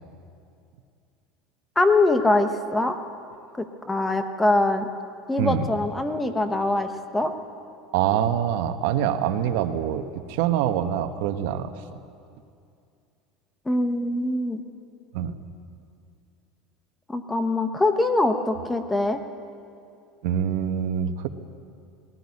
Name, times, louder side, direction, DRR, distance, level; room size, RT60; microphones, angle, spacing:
voice 1, 1.8-2.9 3.6-4.9 5.3-7.3 13.7-14.6 17.1-19.2, left 2 dB, 10° left, 7 dB, 1.1 m, -23 dB
voice 2, 7.9-11.7 15.1-15.4 20.2-21.3, right 10 dB, 75° right, 8 dB, 1.2 m, -25 dB
20.0 x 15.0 x 9.8 m, 2.5 s
supercardioid pair, 145°, 0 cm